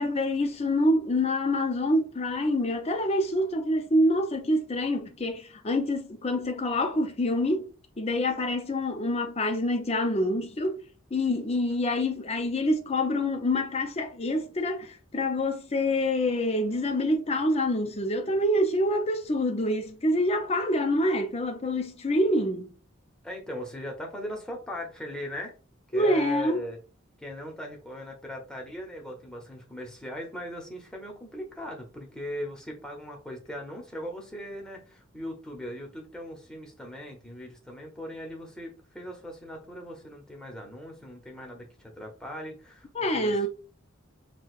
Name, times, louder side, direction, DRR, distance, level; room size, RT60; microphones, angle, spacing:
voice 1, 0.0-7.7 8.0-10.8 11.1-22.7 25.9-26.6 42.9-43.5, left 1 dB, 30° left, 0.6 m, -26 dB
voice 2, 23.2-25.5 25.9-26.8 27.2-43.5, equal, 5° left, 0.9 m, -39 dB
6.3 x 2.3 x 2.4 m
head